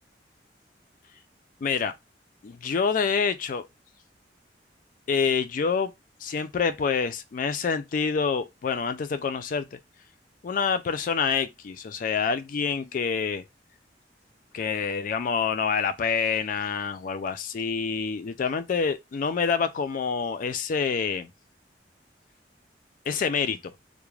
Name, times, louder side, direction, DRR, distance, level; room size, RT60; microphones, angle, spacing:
voice 1, 1.6-1.9 2.4-3.7 5.1-5.9 6.2-9.8 10.4-13.4 14.5-21.3 23.1-23.7, left 5 dB, 50° left, 0.3 m, -27 dB
2.3 x 2.1 x 3.1 m
head